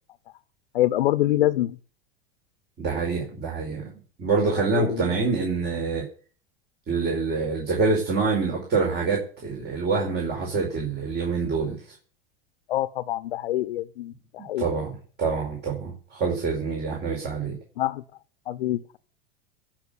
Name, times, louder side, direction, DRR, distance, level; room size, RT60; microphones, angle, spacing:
voice 1, 0.7-1.8 4.6-5.2 12.7-14.7 17.8-18.0 18.5-19.0, left 14 dB, 80° left, 12 dB, 0.9 m, -26 dB
voice 2, 2.8-3.9 4.2-6.1 6.9-11.8 14.6-17.6, right 4 dB, 35° right, 0 dB, 5.0 m, -26 dB
17.5 x 6.3 x 8.1 m, 0.42 s
hypercardioid pair, 100°, 29 cm